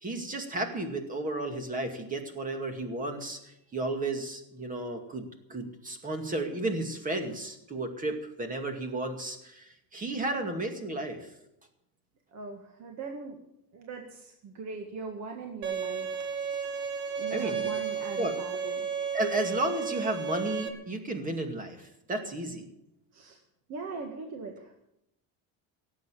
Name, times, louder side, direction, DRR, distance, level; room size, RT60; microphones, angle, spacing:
voice 1, 0.0-11.3 17.3-17.7 18.2-18.3 19.1-22.7, right 2 dB, 20° right, 5 dB, 2.2 m, -33 dB
voice 2, 12.3-13.4 13.7-16.1 17.2-18.9 23.1-23.4 23.7-24.9, right 4 dB, 45° right, 3 dB, 1.8 m, -40 dB
Bowed string instrument, 15.6-20.7, right 6 dB, 80° right, 2.4 m, -33 dB
17.5 x 8.5 x 8.5 m, 0.82 s
cardioid pair, 170°, 38 cm